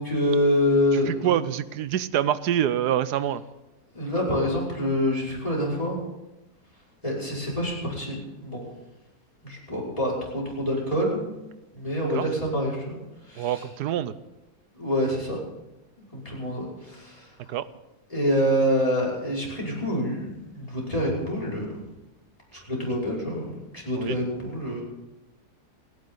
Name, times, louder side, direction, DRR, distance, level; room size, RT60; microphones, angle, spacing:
voice 1, 0.0-1.3 3.9-6.0 7.0-8.6 9.4-11.2 11.7-13.0 13.3-13.6 14.8-15.4 16.1-17.3 18.1-21.7 22.7-24.8, equal, 20° left, -5 dB, 6.0 m, -26 dB
voice 2, 0.9-3.4 12.1-12.3 13.4-14.1 17.5-17.7 24.0-24.2, right 11 dB, 85° right, 15 dB, 1.3 m, -26 dB
29.5 x 10.5 x 4.0 m, 0.99 s
omnidirectional pair, 1.7 m